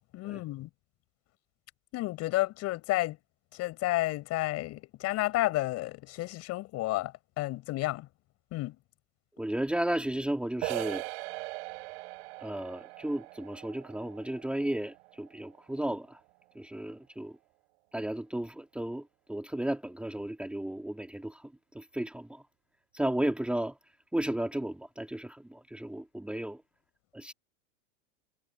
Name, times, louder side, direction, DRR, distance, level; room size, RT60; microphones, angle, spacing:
voice 1, 0.1-0.7 1.9-3.2 3.5-8.1 8.5-8.8, left 17 dB, 45° left, 6.6 m, -31 dB
voice 2, 9.4-11.1 12.4-16.2 16.5-17.4 17.9-22.4 22.9-23.8 24.1-26.6 27.1-27.3, right 1 dB, 5° right, 3.1 m, -34 dB
sound 1, 10.6-16.1, right 25 dB, 60° right, 4.1 m, -40 dB
supercardioid pair, 130°, 36 cm